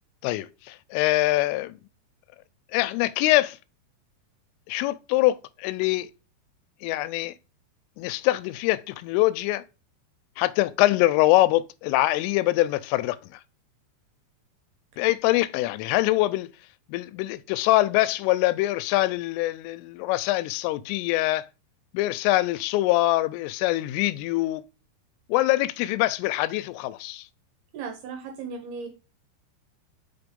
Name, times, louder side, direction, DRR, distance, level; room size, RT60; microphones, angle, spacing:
voice 1, 0.2-1.8 2.7-3.6 4.7-6.1 6.8-7.3 8.0-9.6 10.4-13.4 15.0-16.5 16.9-21.5 21.9-24.6 25.3-27.3, left 17 dB, 85° left, 3.1 m, -24 dB
voice 2, 27.7-28.9, right 5 dB, 70° right, 2.5 m, -36 dB
5.9 x 5.9 x 5.2 m
omnidirectional pair, 5.7 m